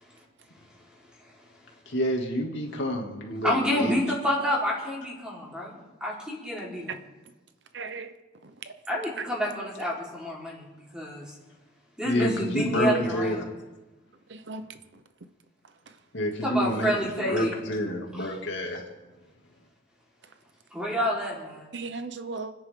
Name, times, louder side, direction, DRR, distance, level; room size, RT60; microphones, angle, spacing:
voice 1, 1.9-3.9 12.0-13.4 16.1-18.8, equal, 75° left, 2.5 m, -28 dB
voice 2, 3.4-6.9 8.9-11.2 12.0-13.5 16.4-17.5 18.1-18.4 20.7-21.7, equal, 5° right, 4.3 m, -29 dB
voice 3, 7.7-8.1 8.4-8.7 9.2-9.3 14.3-14.6 14.9-15.0 15.9-16.0 21.7-22.5, right 4 dB, 70° right, 0.8 m, -37 dB
29.5 x 10.0 x 3.8 m
head